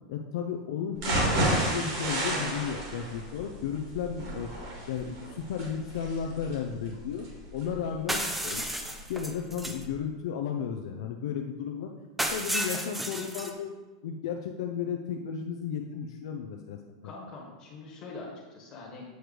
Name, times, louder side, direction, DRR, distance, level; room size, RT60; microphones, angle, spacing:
voice 1, 0.1-4.5 4.9-7.3 7.5-8.7 9.1-11.9 12.3-13.7 14.0-17.1, left 7 dB, 65° left, 3 dB, 0.5 m, -34 dB
sound 1, 0.9-8.9 9.3-9.4 9.8-9.9, right 2 dB, 50° right, 2.1 m, -32 dB
sound 2, 8.1-9.8 12.2-13.5, right 1 dB, 5° right, 0.4 m, -32 dB
voice 2, 17.0-19.0, left 3 dB, 25° left, -2 dB, 1.4 m, -43 dB
7.8 x 3.1 x 5.1 m, 1.2 s
supercardioid pair, 170°, 3 cm